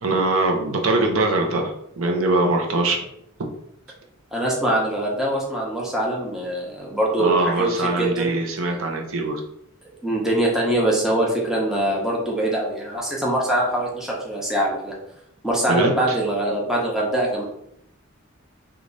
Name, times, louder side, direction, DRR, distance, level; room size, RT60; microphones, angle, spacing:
voice 1, 0.0-3.0 7.2-9.4 15.7-16.2, right 2 dB, 85° right, 1 dB, 0.7 m, -22 dB
voice 2, 4.3-8.3 10.0-14.9 15.4-17.4, right 1 dB, ahead, -4 dB, 0.7 m, -23 dB
3.2 x 2.4 x 3.9 m, 0.75 s
head